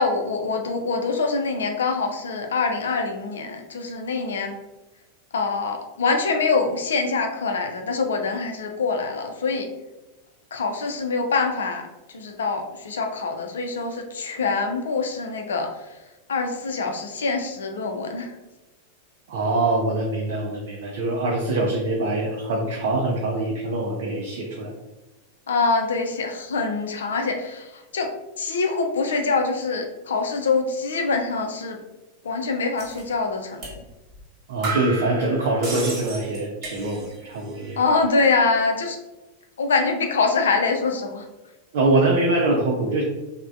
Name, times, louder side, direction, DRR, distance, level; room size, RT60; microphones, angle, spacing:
voice 1, 0.0-4.5 5.3-9.7 10.5-16.0 16.3-18.4 25.5-28.1 28.4-31.8 32.2-33.8 37.8-39.0 39.6-41.2, left 4 dB, 65° left, 4 dB, 0.4 m, -24 dB
voice 2, 19.3-24.7 34.5-37.8 41.7-43.0, right 2 dB, 55° right, -1 dB, 0.4 m, -24 dB
sound 1, 32.8-33.0 33.6-33.8 34.1-34.2 34.6-37.3 37.5-38.1, right 3 dB, 35° right, 1.1 m, -33 dB
3.2 x 2.1 x 2.4 m, 1.0 s
figure-of-eight pair, 90°, 0 cm